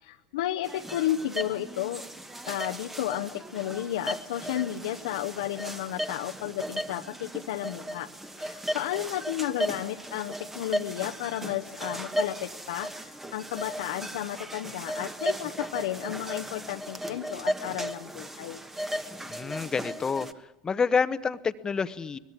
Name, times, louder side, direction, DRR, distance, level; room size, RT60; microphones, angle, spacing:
voice 1, 0.0-2.0 2.5-8.1 8.4-18.6, left 12 dB, 70° left, 4 dB, 0.9 m, -33 dB
sound 1, 0.6-20.3, equal, 10° right, 1.3 m, -36 dB
voice 2, 19.3-20.3 20.6-22.2, left 5 dB, 20° left, 14 dB, 0.9 m, -28 dB
23.5 x 21.0 x 7.4 m, 1.0 s
hypercardioid pair, 85°, 3 cm